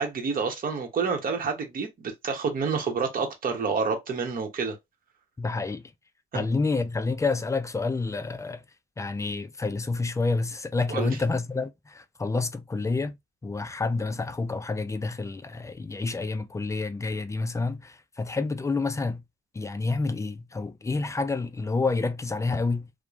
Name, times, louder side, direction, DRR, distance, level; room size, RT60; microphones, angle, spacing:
voice 1, 0.0-4.8 6.3-6.4 10.9-11.1, right 5 dB, 45° right, 1.0 m, -28 dB
voice 2, 5.4-5.8 6.3-8.6 9.0-13.2 13.4-19.2 19.5-22.9, left 3 dB, 15° left, 0.4 m, -28 dB
2.9 x 2.1 x 2.5 m
cardioid pair, 90°, 20 cm